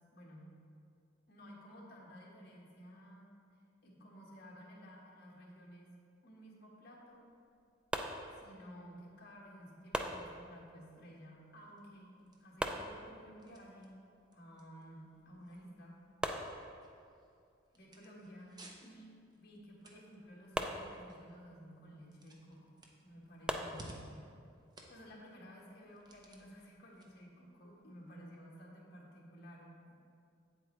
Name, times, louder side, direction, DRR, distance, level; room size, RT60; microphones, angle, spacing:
voice 1, 0.1-0.5 1.3-5.9 6.2-7.3 8.4-12.1 12.4-14.0 14.3-16.0 17.7-18.5 18.8-22.7 23.0-23.9 24.9-29.9, equal, 55° left, -3 dB, 1.7 m, -54 dB
sound 1, 7.9-8.9 9.9-10.9 12.6-13.6 15.2-15.3 15.7-15.8 16.2-17.3 20.5-21.5 23.5-24.4, equal, 5° right, 0.3 m, -41 dB
sound 2, 11.4-28.4, right 1 dB, 20° right, 0.7 m, -61 dB
8.2 x 8.0 x 3.3 m, 2.3 s
head